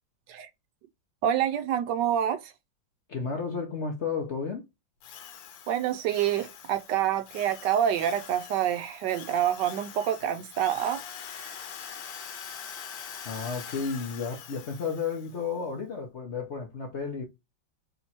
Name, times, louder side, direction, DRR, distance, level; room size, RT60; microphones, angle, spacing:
voice 1, 1.2-2.5 5.7-11.0 11.3-11.6, right 10 dB, 75° right, 1.1 m, -27 dB
voice 2, 3.1-4.6 13.2-17.2, left 5 dB, 55° left, 0.7 m, -32 dB
Drill, 5.0-15.4, left 8 dB, 85° left, 1.5 m, -44 dB
3.5 x 3.0 x 4.1 m
omnidirectional pair, 2.1 m